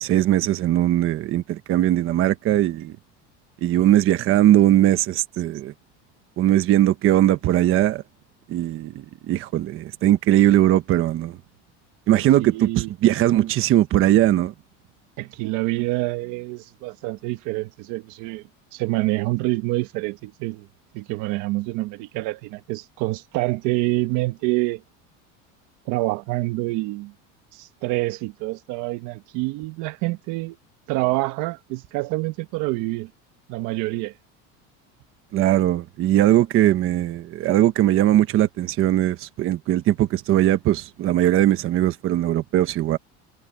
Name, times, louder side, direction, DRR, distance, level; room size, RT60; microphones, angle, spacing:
voice 1, 0.0-2.9 3.6-5.7 6.4-8.0 8.5-8.9 9.3-11.4 12.1-14.5 35.3-43.0, right 13 dB, 40° right, 1.1 m, -19 dB
voice 2, 12.1-12.9 15.2-18.4 18.7-20.7 20.9-24.8 25.9-27.1 27.5-30.6 30.9-33.1 33.5-34.1, right 20 dB, 60° right, 1.4 m, -27 dB
cardioid pair, 160°, 34 cm